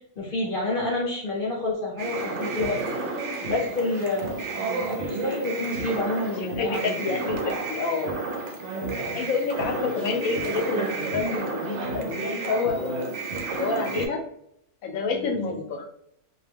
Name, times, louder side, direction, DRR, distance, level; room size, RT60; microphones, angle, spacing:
voice 1, 0.2-2.8 3.5-7.1 8.7-9.2 15.1-15.6, left 2 dB, 50° left, -3 dB, 0.8 m, -29 dB
sound 1, 2.0-14.1, right 3 dB, 65° right, 0.8 m, -31 dB
voice 2, 6.4-7.4 7.7-8.1 9.1-13.0 13.6-14.2 14.8-15.9, left 4 dB, 80° left, 2 dB, 1.0 m, -28 dB
2.4 x 2.2 x 3.3 m, 0.73 s
omnidirectional pair, 1.4 m